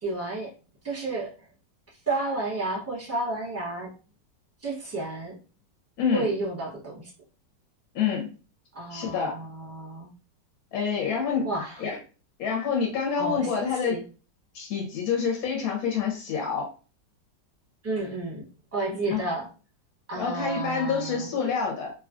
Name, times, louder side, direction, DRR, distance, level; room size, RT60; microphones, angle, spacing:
voice 1, 0.0-0.5 0.8-1.3 2.1-3.9 4.6-5.4 6.1-7.1 8.7-10.1 11.4-11.8 13.2-14.0 17.8-19.5 20.1-21.3, right 2 dB, 10° right, -5 dB, 0.7 m, -31 dB
voice 2, 6.0-6.3 7.9-8.3 8.9-9.3 10.7-11.5 11.8-12.0 12.4-14.0 14.5-16.7 19.1-19.2 20.1-21.9, left 6 dB, 65° left, 0 dB, 1.1 m, -27 dB
3.1 x 2.3 x 2.4 m, 0.35 s
omnidirectional pair, 1.9 m